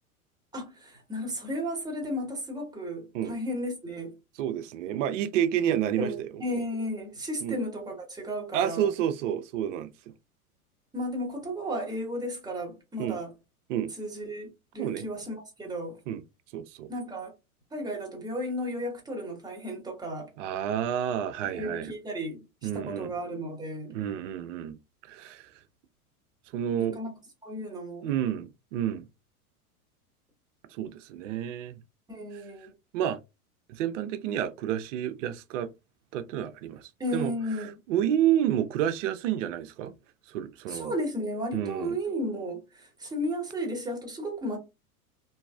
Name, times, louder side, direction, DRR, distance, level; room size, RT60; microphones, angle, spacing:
voice 1, 0.5-4.1 6.0-8.9 10.9-13.3 14.0-16.0 16.9-17.3 17.7-20.3 21.4-23.9 26.8-27.1 27.4-28.1 32.1-32.7 37.0-37.7 40.7-44.6, equal, 10° right, 1.0 m, -34 dB
voice 2, 4.4-6.3 7.4-7.6 8.5-9.9 13.0-13.2 13.7-13.9 14.8-15.0 16.1-16.2 16.5-16.9 20.4-21.9 22.6-23.1 23.9-24.8 25.1-25.5 26.5-27.0 28.0-29.1 30.7-31.8 32.9-33.2 33.7-35.7 36.1-37.3 37.6-39.9 40.3-40.9 41.5-42.0, right 10 dB, 55° right, 0.5 m, -29 dB
3.1 x 2.6 x 2.2 m
hypercardioid pair, 100°, 45 cm